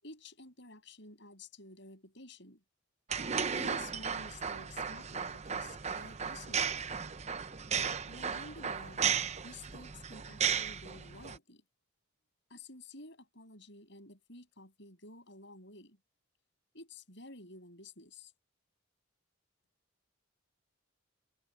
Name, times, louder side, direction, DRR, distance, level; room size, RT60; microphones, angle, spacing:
voice 1, 0.0-2.6 3.5-6.8 7.7-9.1 9.4-11.6 12.5-16.0 16.7-18.3, left 2 dB, 55° left, 7.6 m, -52 dB
sound 1, 3.1-11.4, right 7 dB, 30° right, 0.7 m, -35 dB
head